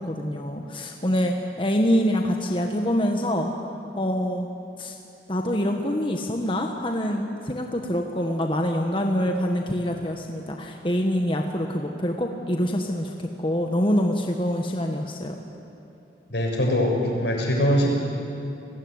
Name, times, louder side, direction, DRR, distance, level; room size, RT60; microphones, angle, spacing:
voice 1, 0.0-3.5 4.0-4.5 4.8-4.9 5.3-15.3, equal, 30° left, 3 dB, 1.4 m, -25 dB
voice 2, 16.3-17.9, equal, 75° left, 0 dB, 6.8 m, -22 dB
30.0 x 20.5 x 9.7 m, 2.8 s
head